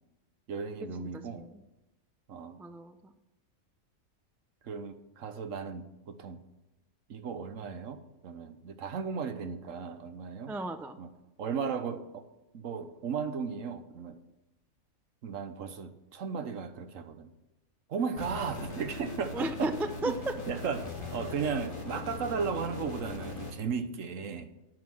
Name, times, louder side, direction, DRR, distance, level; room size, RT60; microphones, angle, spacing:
voice 1, 0.5-1.4 2.3-2.6 4.6-6.4 7.1-10.6 11.0-11.1 11.4-12.3 12.5-14.2 15.2-17.3 17.9-19.7 20.0-20.1 20.5-24.5, right 6 dB, 70° right, 9 dB, 1.3 m, -35 dB
voice 2, 1.0-1.5 2.6-3.1 10.5-11.0 19.3-20.1, right 2 dB, 5° right, 8 dB, 0.3 m, -35 dB
sound 1, 18.2-23.5, left 3 dB, 20° left, 1.9 m, -40 dB
9.6 x 9.2 x 6.2 m, 1.0 s
omnidirectional pair, 1.4 m